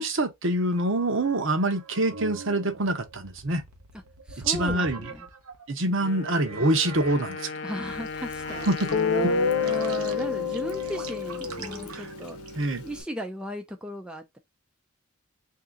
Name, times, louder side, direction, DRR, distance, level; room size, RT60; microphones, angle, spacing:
voice 1, 0.0-3.6 4.5-5.0 5.7-7.5 8.7-8.9 11.9-12.1 12.5-12.8, right 2 dB, 60° right, 0.9 m, -25 dB
sound 1, 0.7-5.7 6.2-12.9, right 4 dB, 85° right, 0.9 m, -43 dB
voice 2, 4.3-5.3 7.6-9.0 9.6-12.4 12.8-14.4, equal, 5° right, 0.5 m, -36 dB
Wind instrument woodwind instrument, 6.0-11.7, left 5 dB, 50° left, 0.4 m, -38 dB
Guitar, 8.3-8.4 8.9-13.0, left 4 dB, 85° left, 0.8 m, -28 dB
3.6 x 2.8 x 3.6 m
head